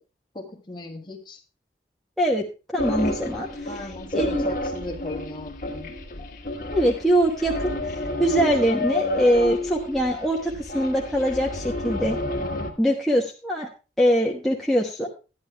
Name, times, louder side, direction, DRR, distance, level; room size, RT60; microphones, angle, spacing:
voice 1, 0.3-1.4 3.7-5.9, left 1 dB, 25° left, 2 dB, 1.8 m, -36 dB
voice 2, 2.7-4.5 6.7-12.2 12.8-13.7 14.0-15.1, equal, ahead, -3 dB, 1.1 m, -23 dB
sound 1, 2.8-12.7, left 1 dB, 45° left, 1.7 m, -30 dB
12.5 x 10.5 x 3.4 m, 0.31 s
head